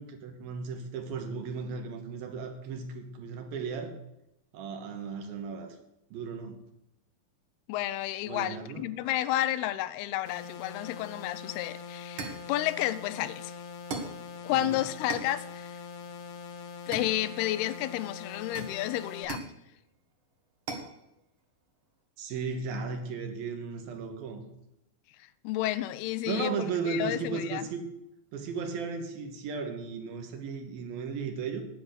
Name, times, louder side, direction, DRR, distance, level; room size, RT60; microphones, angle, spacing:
voice 1, 0.0-3.9 4.5-5.8 6.1-6.6 8.2-8.8 14.5-14.8 22.2-24.4 26.3-27.8 28.3-31.6, right 5 dB, 75° right, 2.9 m, -35 dB
voice 2, 7.7-13.5 14.4-15.8 16.9-19.4 25.4-26.6 26.9-27.7, left 14 dB, 90° left, 2.6 m, -31 dB
sound 1, 10.3-19.3, left 6 dB, 70° left, 1.9 m, -43 dB
sound 2, 11.5-11.6 12.2-12.5 13.9-14.2 15.1-15.4 16.9-17.6 18.5-19.6 20.7-21.0, right 3 dB, 60° right, 1.4 m, -38 dB
10.5 x 8.5 x 6.4 m
omnidirectional pair, 4.4 m